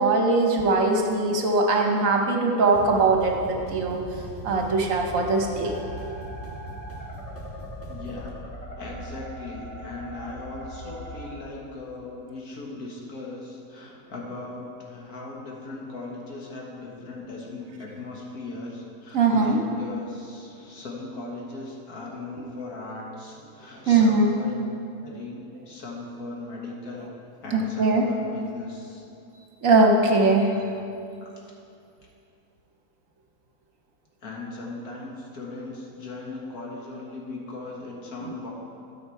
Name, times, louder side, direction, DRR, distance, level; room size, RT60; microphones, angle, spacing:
voice 1, 0.0-4.0 4.4-5.8 19.1-19.6 23.9-24.3 27.5-28.1 29.6-30.5 38.2-38.4, right 3 dB, 60° right, 1 dB, 1.2 m, -21 dB
sound 1, 2.7-8.3, equal, 10° left, 1.8 m, -40 dB
sound 2, 5.6-11.3, right 1 dB, 25° left, 1.3 m, -40 dB
voice 2, 7.9-8.3 8.8-24.6 25.0-27.1 27.4-29.0 30.5-30.7 31.2-31.3 34.2-38.5, left 2 dB, 70° left, -2 dB, 1.9 m, -38 dB
13.0 x 5.8 x 4.6 m, 2.6 s
omnidirectional pair, 1.7 m